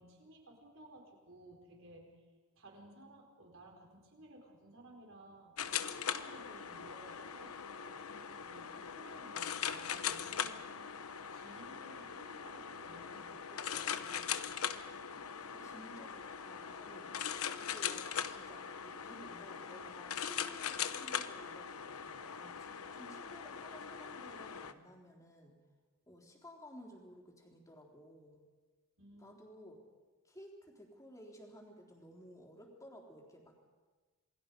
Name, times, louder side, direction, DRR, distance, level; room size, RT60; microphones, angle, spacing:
voice 1, 0.0-2.2 2.5-5.5 6.0-10.8 11.3-14.3 29.0-29.4, right 1 dB, 60° right, 1 dB, 4.8 m, -57 dB
sound 1, 5.6-24.7, left 8 dB, 75° left, 1.0 m, -41 dB
voice 2, 15.2-25.6 26.1-28.4 29.2-29.8 30.2-33.7, equal, 15° left, 0 dB, 3.5 m, -56 dB
28.0 x 20.5 x 5.3 m, 1.3 s
head